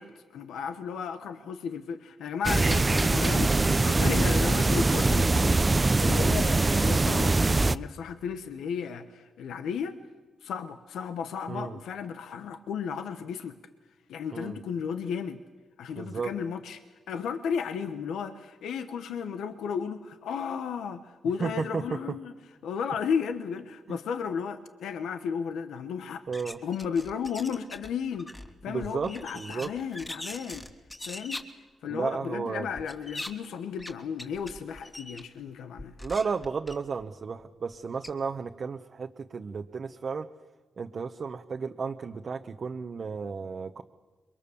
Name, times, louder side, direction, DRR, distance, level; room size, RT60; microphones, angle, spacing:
voice 1, 0.0-10.0 10.4-13.6 14.1-15.4 15.8-22.3 22.6-26.2 26.6-28.3 28.6-30.6 31.0-31.4 31.8-35.9, left 7 dB, 85° left, 9 dB, 1.1 m, -34 dB
sound 1, 2.4-7.8, right 3 dB, 30° right, 0.7 m, -23 dB
voice 2, 16.0-16.3 21.4-22.2 23.9-24.0 26.3-26.6 28.7-29.7 31.9-32.7 36.0-40.3 40.8-43.8, right 5 dB, 55° right, 4 dB, 1.1 m, -33 dB
sound 2, 26.3-27.9 28.1-31.4 32.8-33.3 33.8-33.9 34.2-35.2 35.8-37.0 37.7-37.8 38.0-38.1, left 1 dB, 20° left, 2.7 m, -41 dB
28.0 x 22.5 x 7.2 m, 1.3 s
supercardioid pair, 50°, 0 cm